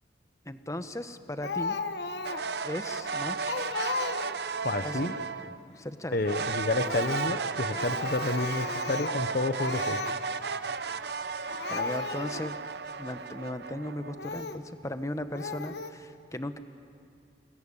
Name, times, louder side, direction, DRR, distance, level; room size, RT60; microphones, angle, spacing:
voice 1, 0.4-1.8 2.6-3.7 4.8-5.2 5.7-6.2 11.7-12.6 13.0-16.6, left 1 dB, 20° left, 9 dB, 1.1 m, -37 dB
Speech, 1.4-2.6 3.0-3.1 3.5-4.5 6.7-7.4 7.7-9.3 9.6-10.2 11.1-11.2 11.5-12.5 13.1-13.2 14.2-14.7 15.3-15.9, left 4 dB, 70° left, 1.3 m, -35 dB
sound 1, 2.2-5.6 6.3-14.4, right 5 dB, 65° right, 0.8 m, -34 dB
voice 2, 4.6-5.1 6.1-10.0, left 2 dB, 55° left, 10 dB, 1.0 m, -30 dB
27.5 x 20.0 x 9.9 m, 2.3 s
head